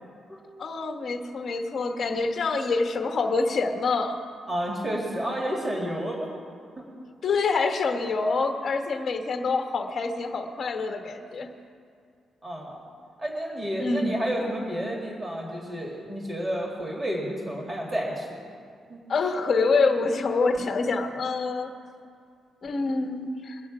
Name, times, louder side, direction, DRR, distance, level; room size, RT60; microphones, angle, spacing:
voice 1, 0.6-4.2 7.2-11.5 13.8-14.1 19.1-21.7 22.6-23.6, left 4 dB, 40° left, 4 dB, 1.2 m, -26 dB
voice 2, 4.5-6.3 6.8-6.9 12.4-12.8 13.2-18.4 18.9-19.0, right 1 dB, 15° right, -2 dB, 1.8 m, -30 dB
22.5 x 8.2 x 4.9 m, 2.3 s
cardioid pair, 160°, 0 cm